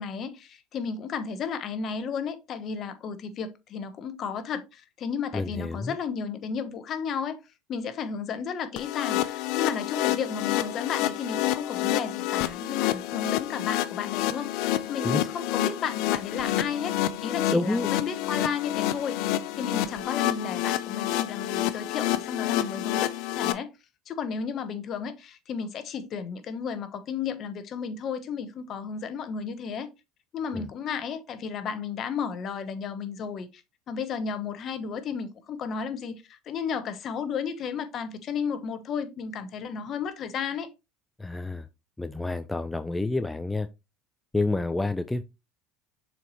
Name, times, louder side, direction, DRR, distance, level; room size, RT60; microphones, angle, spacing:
voice 1, 0.0-7.4 7.7-23.7 24.1-29.9 30.3-33.6 33.9-40.7, left 6 dB, 45° left, 1.1 m, -33 dB
voice 2, 5.3-6.0 15.0-15.3 17.5-17.9 30.5-30.7 41.2-41.7 42.0-43.7 44.3-45.2, left 2 dB, 10° left, 0.4 m, -28 dB
sound 1, 8.8-23.5, left 13 dB, 70° left, 0.6 m, -28 dB
6.9 x 4.5 x 3.1 m
supercardioid pair, 110°, 0 cm